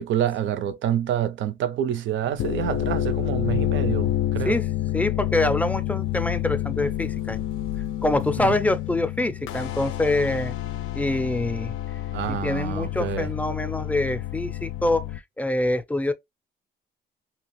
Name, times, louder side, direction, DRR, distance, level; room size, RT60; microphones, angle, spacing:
voice 1, 0.0-4.6 8.4-8.5 12.1-13.3, right 10 dB, 70° right, 0.5 m, -27 dB
sound 1, 2.2-15.2, left 13 dB, 80° left, 0.4 m, -28 dB
voice 2, 4.9-7.4 8.0-10.5 10.9-11.7 12.3-16.1, left 2 dB, 5° left, 0.4 m, -25 dB
2.8 x 2.4 x 3.0 m
cardioid pair, 90°, 20 cm